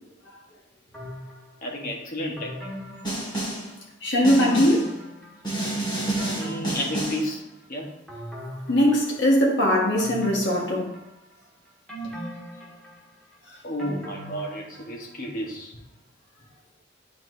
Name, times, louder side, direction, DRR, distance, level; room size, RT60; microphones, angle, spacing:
sound 1, 0.9-1.7 2.4-3.8 4.3-5.6 5.9-7.6 8.1-9.4 10.0-11.4 11.9-15.1 15.5-15.6, equal, 5° left, 1.7 m, -39 dB
voice 1, 1.6-2.7 4.5-4.8 6.3-7.4 7.7-7.9 9.1-9.2 13.6-15.7, equal, 45° left, 1.4 m, -32 dB
Snare drum, 3.0-3.7 4.2-4.9 5.4-7.3, right 1 dB, 25° left, 2.0 m, -29 dB
voice 2, 4.0-4.9 8.7-10.9, equal, 65° left, 1.5 m, -20 dB
9.6 x 4.2 x 2.7 m
head